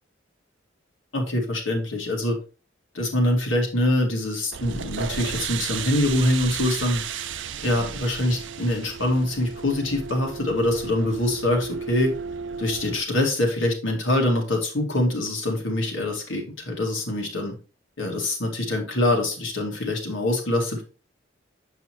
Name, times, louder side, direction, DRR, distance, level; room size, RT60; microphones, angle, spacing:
voice 1, 1.1-2.4 2.9-7.0 7.6-12.1 12.6-17.6 18.0-20.8, left 1 dB, 85° left, 0 dB, 2.2 m, -24 dB
sound 1, 4.5-13.0, right 6 dB, 70° right, 0.5 m, -34 dB
7.3 x 5.6 x 3.0 m, 0.34 s
head